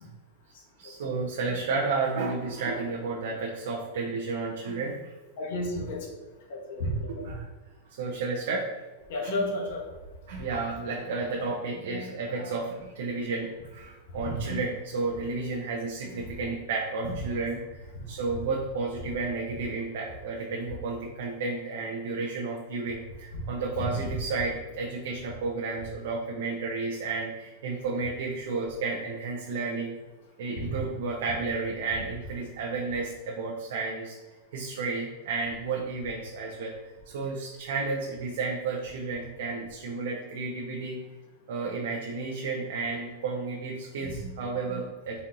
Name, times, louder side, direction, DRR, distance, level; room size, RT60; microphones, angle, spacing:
voice 1, 0.8-5.1 7.1-7.4 7.9-8.7 9.2-9.5 10.3-30.0 30.4-34.2 34.5-36.7 37.1-41.0 41.5-45.2, right 3 dB, 60° right, -1 dB, 0.7 m, -32 dB
voice 2, 5.4-6.0 6.5-7.0 9.1-9.8 15.4-15.5 30.6-30.8, left 1 dB, 50° left, 0 dB, 1.0 m, -31 dB
4.1 x 3.0 x 3.8 m, 1.2 s
supercardioid pair, 175°, 0 cm